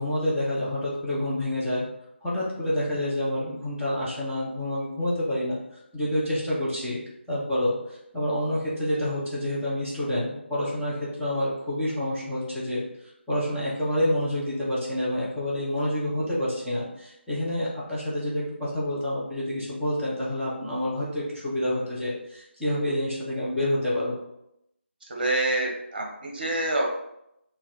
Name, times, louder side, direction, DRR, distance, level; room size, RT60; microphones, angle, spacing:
voice 1, 0.0-1.9 2.2-7.0 7.3-12.8 13.3-24.1, left 1 dB, ahead, -15 dB, 0.4 m, -28 dB
voice 2, 25.1-26.8, right 2 dB, 45° right, -1 dB, 1.0 m, -26 dB
4.4 x 2.2 x 3.7 m, 0.80 s
figure-of-eight pair, 165°, 7 cm